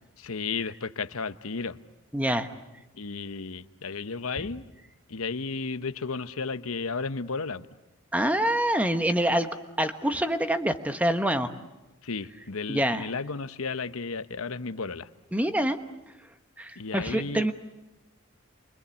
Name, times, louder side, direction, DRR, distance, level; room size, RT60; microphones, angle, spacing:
voice 1, 0.2-1.8 2.9-4.7 5.1-7.7 12.0-15.1 16.8-17.5, left 4 dB, 80° left, 12 dB, 1.0 m, -33 dB
voice 2, 2.1-2.5 8.1-9.5 9.8-11.5 12.7-13.1 15.3-15.8 16.6-17.5, right 1 dB, 5° right, 8 dB, 1.2 m, -25 dB
29.0 x 24.0 x 8.4 m, 0.99 s
head